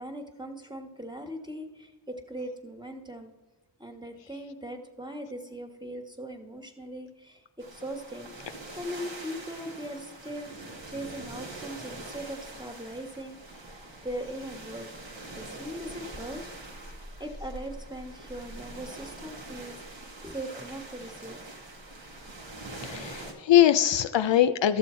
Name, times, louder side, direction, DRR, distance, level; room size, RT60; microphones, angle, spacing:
voice 1, 0.0-3.3 3.8-7.4 7.7-8.3 8.8-10.5 10.9-16.5 17.2-19.7 20.2-21.4, right 1 dB, 10° right, 4 dB, 1.3 m, -40 dB
sound 1, 7.6-23.3, right 2 dB, 70° right, 1.6 m, -43 dB
voice 2, 22.8-24.8, left 11 dB, 70° left, 11 dB, 0.5 m, -22 dB
12.5 x 6.9 x 4.3 m, 1.1 s
cardioid pair, 50°, 46 cm